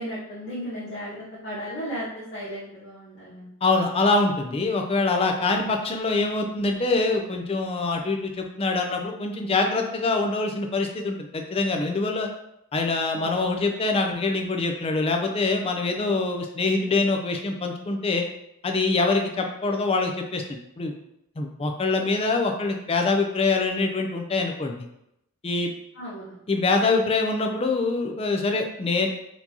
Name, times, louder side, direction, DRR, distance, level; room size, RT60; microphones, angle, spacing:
voice 1, 0.0-3.5 13.1-13.3 16.0-16.3 26.0-26.3, equal, 50° left, -8 dB, 0.8 m, -35 dB
voice 2, 3.6-12.3 12.7-18.2 18.6-20.4 20.8-20.9 21.4-24.7 25.4-25.7 26.5-29.1, left 3 dB, 25° left, 3 dB, 0.4 m, -24 dB
4.3 x 2.7 x 2.8 m, 0.81 s
head